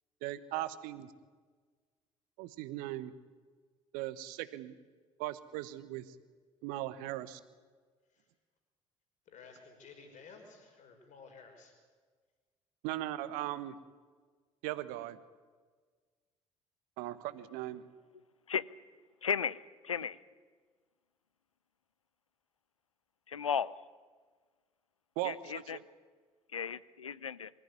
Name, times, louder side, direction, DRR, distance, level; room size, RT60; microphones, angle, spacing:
voice 1, 0.2-1.1 2.4-3.1 3.9-4.7 5.2-6.1 6.6-7.4 12.8-13.8 14.6-15.2 17.0-17.9 25.2-25.8, right 15 dB, 60° right, 14 dB, 1.2 m, -38 dB
voice 2, 9.3-11.7, left 5 dB, 50° left, 4 dB, 5.6 m, -54 dB
voice 3, 19.2-19.6 19.8-20.2 23.3-23.7 25.2-25.8 26.5-27.5, left 7 dB, 85° left, 19 dB, 0.5 m, -34 dB
24.0 x 14.0 x 9.8 m, 1.5 s
figure-of-eight pair, 55°, 16 cm